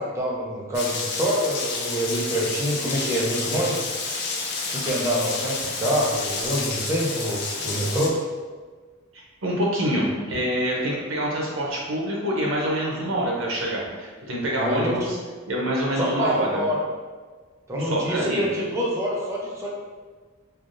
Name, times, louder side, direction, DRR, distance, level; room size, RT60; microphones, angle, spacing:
voice 1, 0.0-3.8 4.6-8.2 14.6-15.0 16.0-16.8 17.7-19.7, equal, 15° right, -5 dB, 0.6 m, -26 dB
Rain, 0.7-8.1, left 4 dB, 55° left, 0.4 m, -30 dB
voice 2, 9.1-15.2 15.5-16.6 17.8-18.4, equal, 85° right, -3 dB, 0.8 m, -26 dB
3.3 x 2.4 x 2.6 m, 1.4 s
head